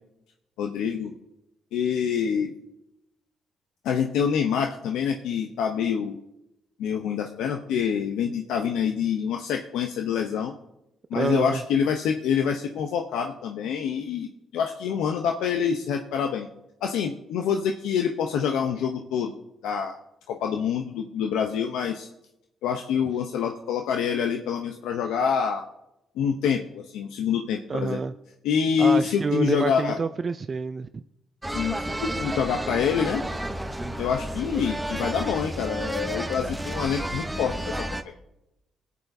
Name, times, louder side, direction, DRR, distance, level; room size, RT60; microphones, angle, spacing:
voice 1, 0.6-1.1 1.7-2.6 3.8-6.2 6.8-10.5 11.1-16.5 16.8-20.0 20.3-22.1 22.6-25.6 26.2-28.0 28.4-30.0 31.5-33.2 34.0-38.1, left 7 dB, 90° left, 3 dB, 0.6 m, -26 dB
voice 2, 11.1-11.6 27.7-28.1 28.8-31.0, right 5 dB, 40° right, 10 dB, 0.3 m, -28 dB
sound 1, 31.4-38.0, right 1 dB, 10° right, 0.7 m, -31 dB
22.0 x 8.3 x 2.6 m, 0.90 s
cardioid pair, 90°, 0 cm